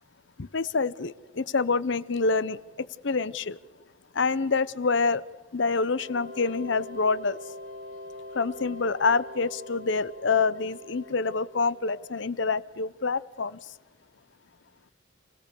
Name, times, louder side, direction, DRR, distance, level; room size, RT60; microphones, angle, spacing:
voice 1, 0.4-3.6 4.1-5.2 5.5-7.4 8.3-13.6, left 4 dB, 60° left, 17 dB, 0.7 m, -27 dB
sound 1, 5.8-12.4, left 1 dB, 75° right, 1.5 m, -43 dB
27.5 x 17.5 x 6.9 m, 1.2 s
head